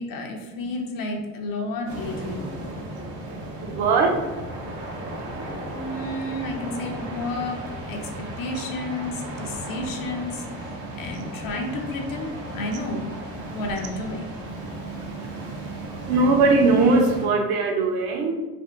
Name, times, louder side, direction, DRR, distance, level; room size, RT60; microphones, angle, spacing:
voice 1, 0.0-2.5 5.6-7.6 7.9-13.1 13.5-14.3, left 2 dB, 50° left, 2 dB, 0.6 m, -31 dB
sound 1, 1.9-17.3, right 1 dB, 80° right, 1.0 m, -35 dB
voice 2, 2.7-5.9 8.2-8.3 10.6-11.1 13.3-13.6 14.5-18.3, right 3 dB, 55° right, 3 dB, 0.7 m, -24 dB
3.4 x 2.4 x 2.4 m, 1.2 s
supercardioid pair, 85°, 44 cm